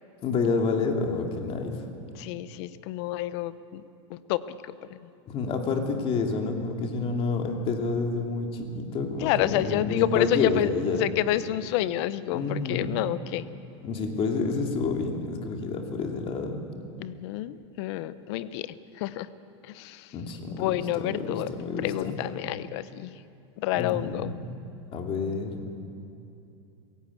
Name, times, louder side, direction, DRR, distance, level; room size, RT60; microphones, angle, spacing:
voice 1, 0.2-1.8 5.3-11.1 12.3-13.0 13.8-16.6 20.1-22.2 23.7-24.5 24.9-25.6, left 4 dB, 40° left, 2 dB, 2.8 m, -29 dB
voice 2, 2.2-3.8 4.1-5.0 9.2-10.7 11.0-13.4 17.0-19.3 19.7-20.1 20.5-21.5 21.8-23.1 23.6-24.3, left 14 dB, 65° left, 15 dB, 0.9 m, -29 dB
19.5 x 17.5 x 8.5 m, 2.7 s
supercardioid pair, 125°, 15 cm